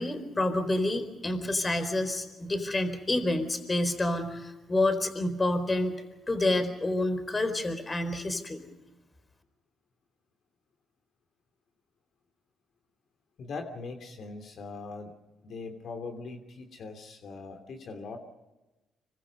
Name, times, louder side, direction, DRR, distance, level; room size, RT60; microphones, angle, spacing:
voice 1, 0.0-8.6, left 2 dB, 25° left, 9 dB, 4.3 m, -28 dB
voice 2, 13.4-15.1 15.4-18.2, left 4 dB, 60° left, 5 dB, 2.9 m, -41 dB
26.5 x 23.5 x 5.4 m, 1.1 s
cardioid pair, 90°, 0 cm